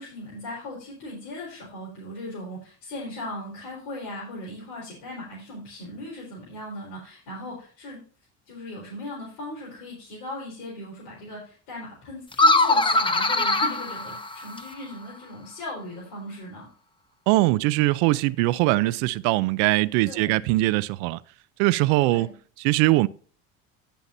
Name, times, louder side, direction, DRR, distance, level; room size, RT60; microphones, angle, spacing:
voice 1, 0.0-8.0 8.5-16.7 20.0-20.4 22.0-22.3, left 1 dB, 80° left, 4.4 m, -38 dB
sound 1, 12.3-14.8, left 2 dB, 15° left, 0.9 m, -22 dB
voice 2, 17.3-21.2 21.6-22.3 22.6-23.1, right 19 dB, 80° right, 0.6 m, -21 dB
17.0 x 5.8 x 2.7 m
supercardioid pair, 100°, 34 cm